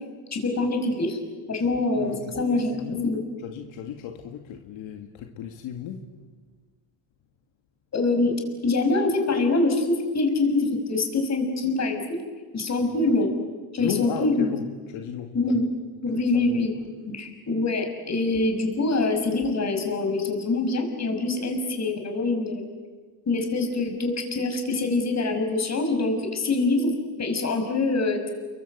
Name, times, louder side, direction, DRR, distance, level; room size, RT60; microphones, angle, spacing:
voice 1, 0.3-1.2 1.5-2.7 3.0-3.2 7.9-12.2 12.5-13.3 13.7-14.5 15.3-15.7 16.0-16.7 17.1-22.7 23.3-28.2, left 3 dB, 35° left, 5 dB, 5.9 m, -24 dB
voice 2, 2.0-3.1 3.4-6.1 13.0-13.1 13.8-15.6 16.3-16.7, left 8 dB, 75° left, 4 dB, 2.2 m, -35 dB
29.5 x 23.5 x 8.1 m, 1.5 s
cardioid pair, 120°, 47 cm